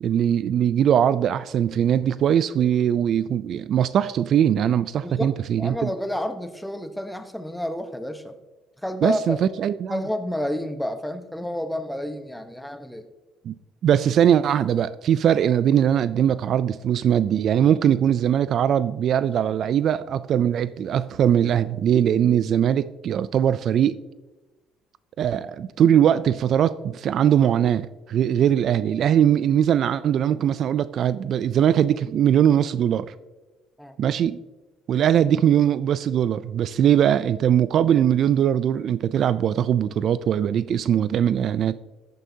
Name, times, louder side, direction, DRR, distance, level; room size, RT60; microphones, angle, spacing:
voice 1, 0.0-5.9 9.0-10.0 13.5-13.6 13.8-24.0 25.2-33.1 34.0-34.4 34.9-41.8, right 9 dB, 55° right, 0.3 m, -21 dB
voice 2, 5.0-8.4 8.8-9.4 9.9-13.1 33.8-34.0, left 1 dB, 5° left, 1.0 m, -30 dB
13.5 x 9.3 x 2.8 m
cardioid pair, 100°, 0 cm